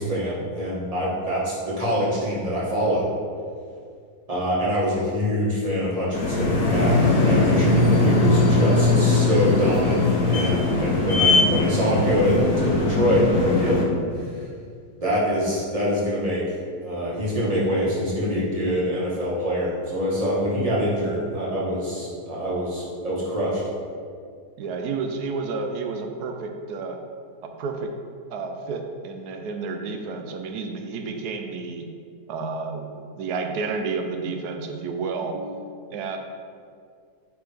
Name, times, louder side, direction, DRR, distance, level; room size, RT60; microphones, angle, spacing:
voice 1, 0.0-3.0 4.3-7.0 7.3-10.0 10.3-13.8 15.0-16.4 16.8-23.6, equal, 25° right, -8 dB, 1.5 m, -25 dB
sound 1, 6.1-13.8, left 2 dB, 65° left, 1.4 m, -20 dB
voice 2, 24.6-27.0 27.4-27.9 28.3-31.9 32.3-36.2, right 4 dB, 75° right, 4 dB, 1.1 m, -31 dB
8.8 x 3.6 x 3.4 m, 2.2 s
omnidirectional pair, 1.7 m